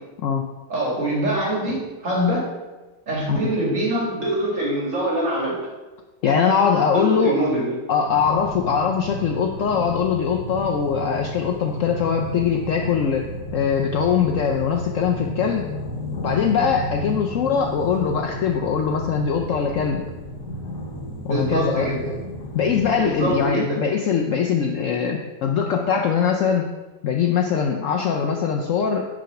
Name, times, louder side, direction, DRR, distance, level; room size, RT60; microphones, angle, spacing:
voice 1, 0.7-2.5 3.1-5.6 6.9-7.7 21.3-22.0 23.0-23.8, right 1 dB, 45° right, -4 dB, 2.2 m, -24 dB
voice 2, 6.2-7.5 7.9-15.7 16.2-20.0 21.2-21.9 22.5-26.7 27.0-29.1, left 6 dB, 90° left, 2 dB, 0.6 m, -22 dB
sound 1, 8.1-23.5, left 1 dB, 65° left, 1.3 m, -33 dB
5.9 x 4.7 x 5.1 m, 1.2 s
omnidirectional pair, 1.9 m